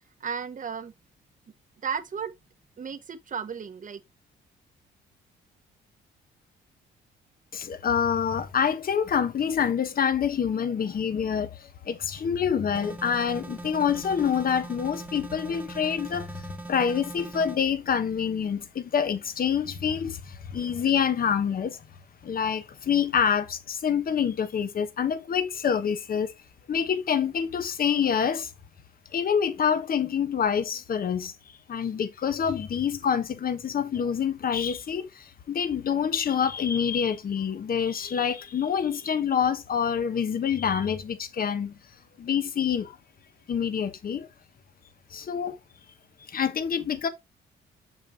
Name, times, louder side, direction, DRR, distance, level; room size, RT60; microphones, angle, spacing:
voice 1, 0.2-0.9 1.8-2.3 2.8-4.0, right 7 dB, 40° right, 1.1 m, -34 dB
voice 2, 7.5-21.8 22.2-26.3 26.7-28.5 29.1-31.3 31.7-41.8 42.2-43.0 43.5-44.3 45.1-45.6 46.3-47.1, left 7 dB, 45° left, 1.1 m, -26 dB
sound 1, 12.7-17.6, right 2 dB, 10° right, 1.3 m, -41 dB
6.8 x 6.0 x 2.8 m
cardioid pair, 90°, 20 cm